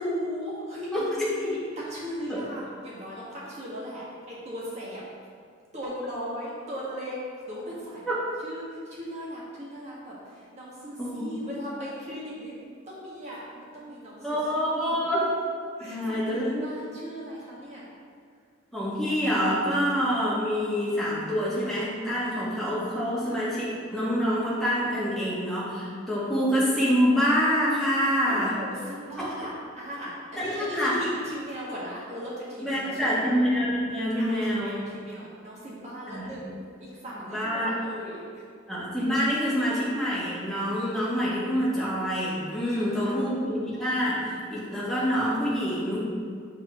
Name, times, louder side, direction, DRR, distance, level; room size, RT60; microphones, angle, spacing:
voice 1, 0.0-5.0 5.7-8.1 8.4-15.1 15.8-17.8 28.1-33.3 34.2-38.4 42.7-43.2, equal, 35° right, -7 dB, 1.6 m, -38 dB
voice 2, 0.9-1.3 2.3-2.4 11.0-11.5 14.2-15.2 15.8-16.7 18.7-28.5 29.2-29.3 30.4-30.9 32.6-34.8 36.1-36.3 37.3-37.7 38.7-44.2 44.5-46.1, equal, ahead, -9 dB, 1.7 m, -26 dB
7.4 x 4.1 x 5.0 m, 2.1 s
head